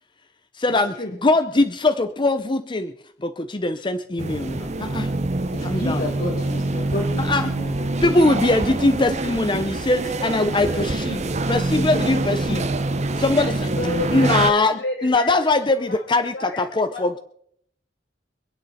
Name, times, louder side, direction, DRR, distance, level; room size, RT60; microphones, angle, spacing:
voice 1, 0.5-2.9 3.2-5.1 5.6-6.1 7.2-7.5 8.0-12.7 13.2-13.7 14.1-17.2, left 2 dB, 25° left, 8 dB, 0.7 m, -21 dB
sound 1, 4.2-14.5, right 2 dB, 40° right, 0.8 m, -25 dB
voice 2, 5.5-7.7 11.7-11.9 12.2-12.3, left 1 dB, 55° left, -1 dB, 2.4 m, -30 dB
voice 3, 13.3-15.4 15.7-16.1 16.3-17.2, left 2 dB, 75° left, 0 dB, 7.3 m, -32 dB
25.5 x 9.2 x 4.3 m, 0.64 s
head